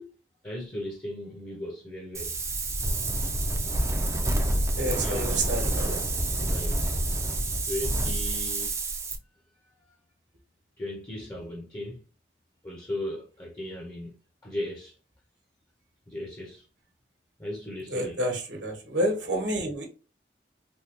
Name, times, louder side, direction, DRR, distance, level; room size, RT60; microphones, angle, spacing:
voice 1, 0.4-2.4 4.8-6.0 6.4-6.8 7.6-8.7 9.9-10.0 10.8-12.0 12.6-14.1 14.4-14.9 16.1-16.7 17.4-18.2, left 1 dB, 20° left, 0.7 m, -37 dB
Wind, 2.1-9.2, right 1 dB, 15° right, 0.4 m, -28 dB
voice 2, 4.8-6.0 17.9-19.9, right 1 dB, 80° right, 1.1 m, -29 dB
3.4 x 2.3 x 2.9 m
head